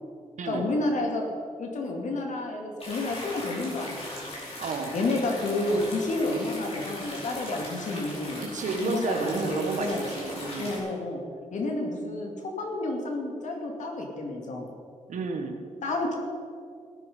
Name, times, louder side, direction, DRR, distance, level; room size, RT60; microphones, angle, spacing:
voice 1, 0.5-1.2 1.6-4.4 4.9-8.4 8.8-10.1 10.6-11.2 11.5-14.7 15.8-16.2, left 2 dB, 70° left, 2 dB, 2.4 m, -30 dB
sound 1, 2.8-10.8, left 1 dB, 50° left, 4.4 m, -39 dB
voice 2, 4.6-4.9 8.4-10.8 15.1-15.6, right 4 dB, 70° right, 5 dB, 1.6 m, -31 dB
18.0 x 9.6 x 5.5 m, 2.3 s
wide cardioid pair, 155°, 13 cm